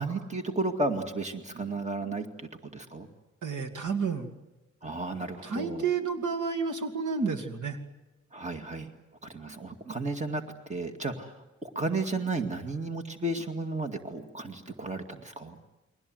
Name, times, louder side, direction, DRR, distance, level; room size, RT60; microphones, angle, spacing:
voice 1, 0.0-3.1 4.8-5.9 8.3-8.9 9.2-10.4 10.7-15.6, right 2 dB, 25° right, 6 dB, 2.2 m, -33 dB
voice 2, 3.4-4.3 5.4-7.8, right 5 dB, 80° right, 6 dB, 2.5 m, -30 dB
29.0 x 22.0 x 7.8 m, 1.1 s
wide cardioid pair, 130°, 30 cm